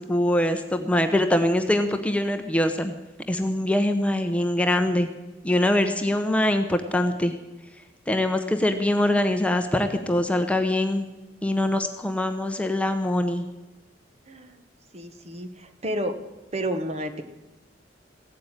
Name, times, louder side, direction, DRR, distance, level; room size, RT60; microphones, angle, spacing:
voice 1, 0.0-2.9 3.3-5.1 5.4-7.3 8.1-11.1 11.4-13.4, left 1 dB, 5° left, 6 dB, 0.8 m, -23 dB
voice 2, 14.3-14.6 14.9-16.2 16.5-17.2, right 1 dB, 35° right, 8 dB, 1.2 m, -31 dB
16.0 x 8.6 x 8.9 m, 1.1 s
head